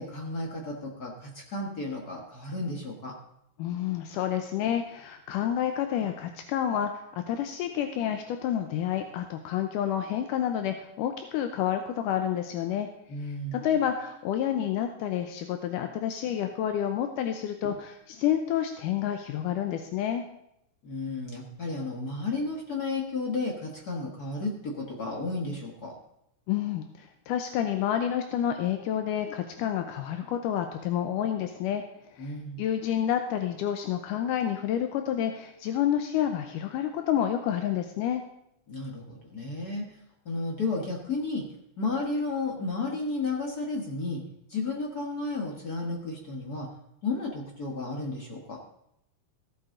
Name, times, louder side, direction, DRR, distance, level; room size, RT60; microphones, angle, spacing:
voice 1, 0.0-3.1 13.1-13.7 17.6-17.7 20.8-26.0 32.2-32.6 38.7-39.8 40.2-41.5 41.8-44.2 44.5-46.7 47.0-48.6, left 3 dB, 60° left, 0 dB, 0.9 m, -33 dB
voice 2, 3.6-12.9 13.5-20.2 26.5-26.8 27.3-31.8 32.2-32.3 32.6-38.2, left 10 dB, 80° left, 6 dB, 2.2 m, -29 dB
15.0 x 8.2 x 3.7 m, 0.79 s
omnidirectional pair, 3.8 m